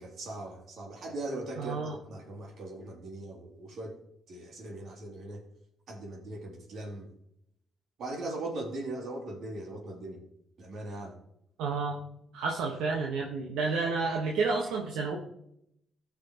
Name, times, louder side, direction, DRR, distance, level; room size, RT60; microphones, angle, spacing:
voice 1, 0.0-4.0 4.3-5.4 5.9-7.1 8.0-10.2 10.6-11.1, right 2 dB, 70° right, 0 dB, 2.8 m, -39 dB
voice 2, 1.6-2.0 11.6-12.0 12.3-15.2, right 4 dB, 90° right, -1 dB, 1.2 m, -30 dB
15.5 x 6.0 x 2.9 m, 0.75 s
cardioid pair, 75°, 0 cm